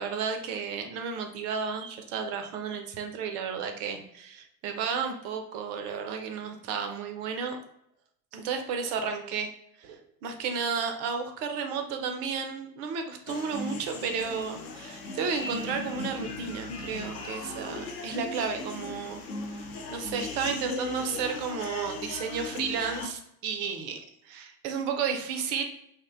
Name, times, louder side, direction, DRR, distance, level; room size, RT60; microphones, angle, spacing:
voice 1, 0.0-7.6 8.3-9.5 9.8-19.2 19.5-24.0 24.2-25.6, right 6 dB, 35° right, 5 dB, 0.4 m, -32 dB
sound 1, 13.3-23.1, left 2 dB, 45° left, 0.4 m, -38 dB
2.5 x 2.1 x 2.3 m, 0.76 s
figure-of-eight pair, 75°, 47 cm